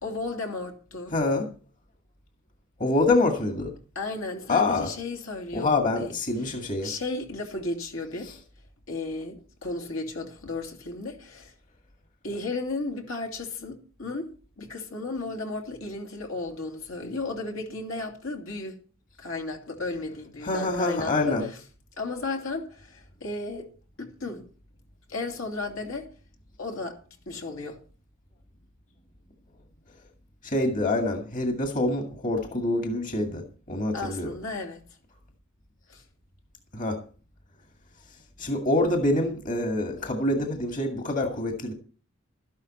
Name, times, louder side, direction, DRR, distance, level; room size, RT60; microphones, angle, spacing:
voice 1, 0.0-1.1 3.9-6.1 6.4-8.3 8.9-11.5 12.2-14.3 14.6-18.8 19.2-21.6 22.0-23.7 24.0-24.5 25.1-26.1 26.6-27.0 27.3-27.8 33.9-34.8 35.9-36.0, left 3 dB, 70° left, 2.6 m, -34 dB
voice 2, 1.1-1.5 2.8-3.7 4.5-4.9 5.5-6.9 20.4-21.5 30.4-33.4 33.7-34.3 36.7-37.0 38.4-41.7, left 2 dB, 40° left, 2.0 m, -26 dB
13.0 x 11.5 x 4.3 m
head